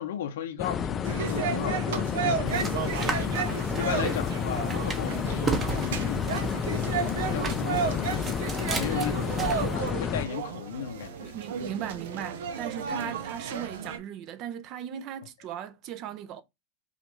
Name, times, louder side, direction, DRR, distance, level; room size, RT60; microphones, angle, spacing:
voice 1, 0.0-8.5 8.7-11.3 12.9-13.1, left 9 dB, 90° left, 0.8 m, -36 dB
sound 1, 0.6-10.3, left 7 dB, 25° left, 0.3 m, -30 dB
sound 2, 1.0-14.0, right 6 dB, 90° right, 0.7 m, -33 dB
sound 3, 2.4-9.8, right 3 dB, 20° right, 0.9 m, -35 dB
voice 2, 11.2-16.4, right 9 dB, 45° right, 0.6 m, -37 dB
5.0 x 2.5 x 3.1 m
supercardioid pair, 140°, 0 cm